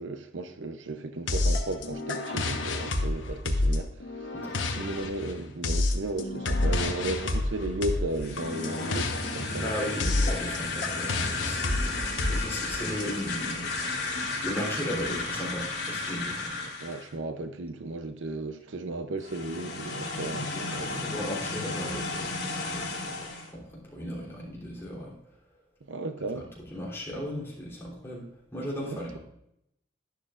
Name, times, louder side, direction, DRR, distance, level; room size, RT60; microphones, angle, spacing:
voice 1, 0.0-4.3 4.8-9.7 11.7-11.8 12.8-13.0 16.6-21.1 25.9-26.5 28.8-29.2, right 2 dB, 80° right, 0.7 m, -35 dB
sound 1, 1.3-13.0, left 2 dB, 80° left, 1.2 m, -29 dB
voice 2, 4.3-4.9 9.6-16.6 20.5-25.3 26.3-26.5 26.7-29.2, equal, 15° left, 3.2 m, -37 dB
sound 2, 8.1-17.1 19.2-23.5, left 3 dB, 60° left, 2.6 m, -34 dB
11.5 x 11.0 x 2.5 m
head